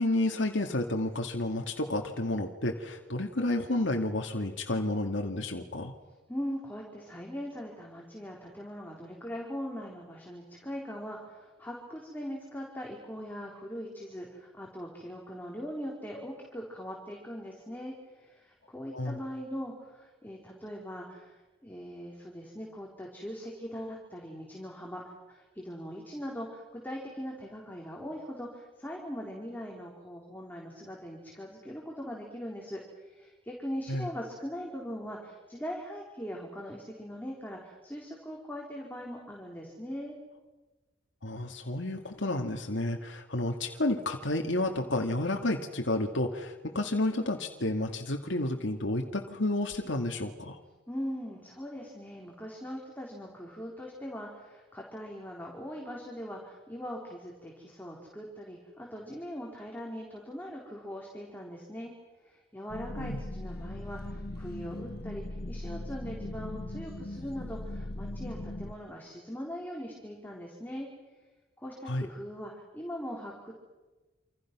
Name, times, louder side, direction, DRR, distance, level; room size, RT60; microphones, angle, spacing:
voice 1, 0.0-5.9 18.9-19.2 33.9-34.1 41.2-50.6 63.0-63.2 71.8-72.1, left 1 dB, 75° left, 3 dB, 2.3 m, -31 dB
voice 2, 6.3-40.2 50.9-61.9 62.2-70.9 71.6-73.6, equal, 10° left, -2 dB, 4.2 m, -41 dB
sound 1, 62.7-68.7, left 1 dB, 50° left, 1.1 m, -39 dB
29.0 x 27.5 x 6.2 m, 1.2 s
head